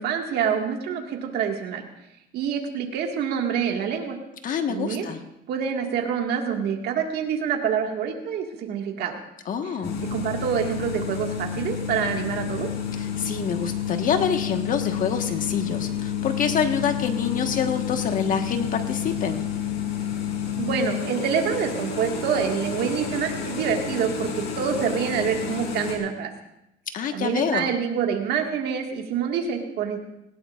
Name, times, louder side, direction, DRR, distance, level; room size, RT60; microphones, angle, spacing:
voice 1, 0.0-1.8 2.3-4.2 4.7-5.1 5.5-9.2 9.6-9.7 10.1-12.7 20.6-26.3 27.1-30.0, right 7 dB, 75° right, 2 dB, 1.9 m, -26 dB
voice 2, 4.4-5.2 9.5-10.0 13.0-19.5 26.9-27.7, left 7 dB, 55° left, 6 dB, 1.5 m, -26 dB
sound 1, 9.8-26.0, left 8 dB, 75° left, 3.5 m, -30 dB
19.0 x 17.5 x 2.5 m, 0.84 s
cardioid pair, 110°, 17 cm